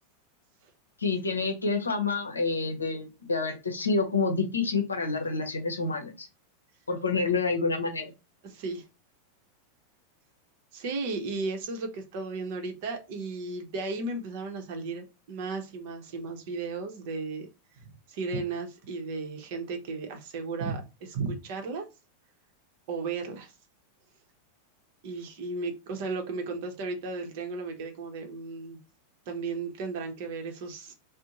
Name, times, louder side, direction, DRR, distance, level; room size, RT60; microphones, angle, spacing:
voice 1, 1.0-6.3 6.9-8.1, left 4 dB, 85° left, 0.6 m, -28 dB
voice 2, 8.4-8.8 10.7-17.5 17.7-21.9 22.9-23.5 25.0-28.8 29.3-30.9, right 4 dB, 55° right, 0.7 m, -35 dB
2.6 x 2.0 x 2.8 m
figure-of-eight pair, 90°, 0 cm